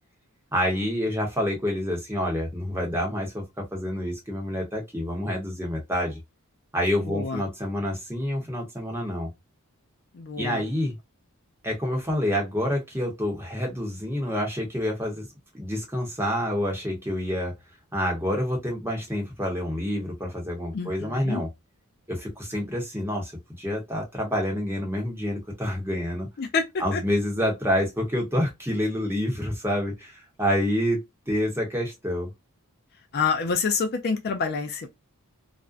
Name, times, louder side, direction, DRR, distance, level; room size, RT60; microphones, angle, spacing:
voice 1, 0.5-6.2 6.7-9.3 10.4-10.9 11.6-15.3 15.5-17.5 17.9-21.5 22.1-23.3 23.6-26.3 26.8-32.3, equal, 10° right, 0.9 m, -28 dB
voice 2, 7.0-7.4 10.1-10.6 20.7-21.4 26.4-26.7 26.9-27.0 33.1-34.9, left 5 dB, 45° left, 0.4 m, -27 dB
2.5 x 2.1 x 2.4 m
head